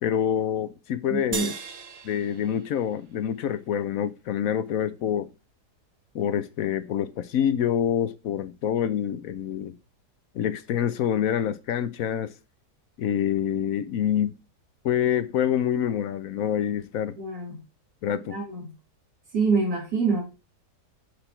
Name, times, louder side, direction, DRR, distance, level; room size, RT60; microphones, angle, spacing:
voice 1, 0.0-1.5 2.0-5.3 6.1-9.8 10.3-12.3 13.0-14.4 14.8-17.1 18.0-18.4, left 9 dB, 65° left, 1.0 m, -26 dB
voice 2, 1.1-1.5 17.2-17.6 18.3-18.6 19.3-20.2, right 4 dB, 80° right, 3.0 m, -26 dB
sound 1, 1.3-3.9, right 6 dB, 45° right, 0.9 m, -38 dB
6.6 x 6.0 x 4.4 m
omnidirectional pair, 1.8 m